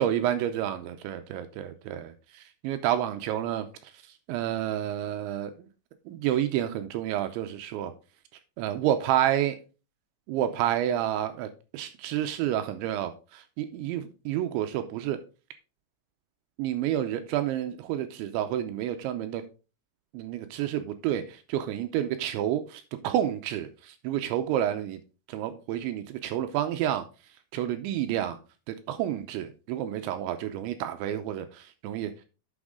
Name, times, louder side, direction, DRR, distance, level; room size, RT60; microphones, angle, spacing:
voice 1, 0.0-3.9 4.3-5.7 6.1-7.9 8.6-9.6 10.3-15.2 16.6-19.4 20.1-25.0 25.3-27.1 27.5-28.4 28.7-32.3, right 11 dB, 85° right, 2.7 m, -29 dB
9.8 x 6.3 x 3.7 m
omnidirectional pair, 5.8 m